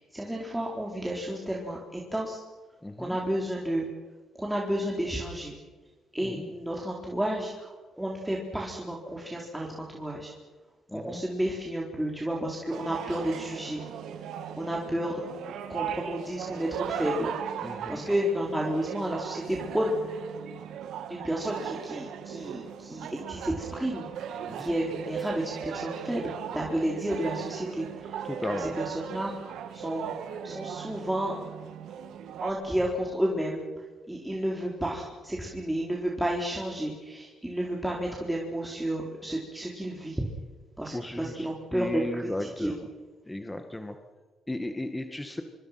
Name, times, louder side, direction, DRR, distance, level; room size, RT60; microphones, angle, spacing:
voice 1, 0.0-2.4 3.0-3.9 4.3-5.6 6.1-10.3 10.9-13.8 14.5-15.2 15.7-17.3 17.9-20.4 21.1-28.3 28.6-30.1 30.4-31.4 32.4-33.6 34.1-40.2 40.8-42.7, right 1 dB, 5° right, -2 dB, 4.4 m, -31 dB
voice 2, 2.8-3.2 6.2-6.5 10.9-11.2 17.6-18.1 24.5-24.7 28.2-28.8 40.9-42.9 43.2-44.0 44.5-45.4, left 1 dB, 10° left, 6 dB, 2.1 m, -35 dB
sound 1, 12.7-32.5, right 8 dB, 80° right, 2.3 m, -38 dB
26.5 x 24.5 x 6.1 m, 1.3 s
cardioid pair, 90°, 0 cm